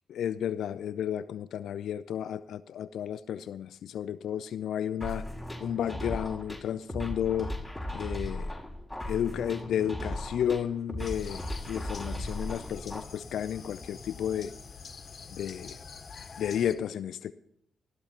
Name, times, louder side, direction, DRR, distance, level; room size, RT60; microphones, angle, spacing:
voice 1, 0.1-5.3 5.6-7.5 7.9-8.5 9.0-14.5 15.3-15.8 16.4-17.3, left 9 dB, 75° left, 14 dB, 0.4 m, -32 dB
sound 1, 5.0-13.0, left 1 dB, ahead, 5.1 m, -37 dB
sound 2, 11.0-16.8, left 5 dB, 50° left, 1.4 m, -45 dB
20.5 x 14.0 x 2.9 m, 0.70 s
hypercardioid pair, 45°, 0 cm